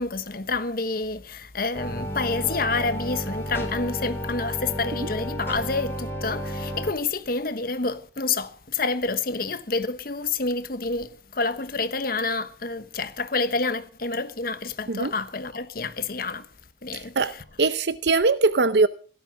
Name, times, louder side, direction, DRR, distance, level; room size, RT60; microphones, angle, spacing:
voice 1, 0.0-16.5 16.8-17.4, left 3 dB, 55° left, 1.2 m, -28 dB
sound 1, 1.7-6.9, equal, 15° left, 4.1 m, -32 dB
voice 2, 17.6-18.9, right 3 dB, 65° right, 0.7 m, -21 dB
17.5 x 12.5 x 5.1 m
head